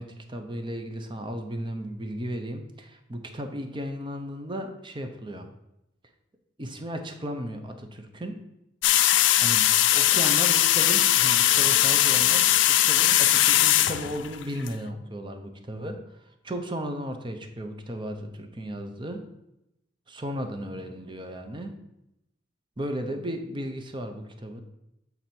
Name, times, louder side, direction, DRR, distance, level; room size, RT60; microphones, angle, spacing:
voice 1, 0.0-5.5 6.6-8.4 9.4-19.3 20.1-21.7 22.8-24.6, equal, 25° right, 6 dB, 0.7 m, -35 dB
sound 1, 8.8-14.7, left 13 dB, 70° left, 0.4 m, -20 dB
7.9 x 4.0 x 4.4 m, 0.86 s
head